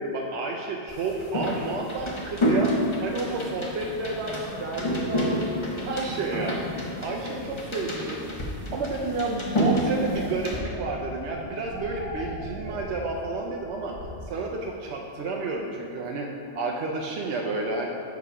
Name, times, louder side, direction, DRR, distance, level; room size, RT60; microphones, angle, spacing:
voice 1, 0.0-2.7 3.0-6.7 7.0-8.3 8.7-13.9 14.2-16.3 16.5-17.9, right 3 dB, 70° right, 0 dB, 0.8 m, -31 dB
sound 1, 0.9-10.6, equal, 30° left, 0.8 m, -29 dB
sound 2, 4.0-8.1 8.6-14.1, left 1 dB, 65° left, 2.1 m, -41 dB
6.8 x 4.7 x 4.9 m, 2.6 s
omnidirectional pair, 1.3 m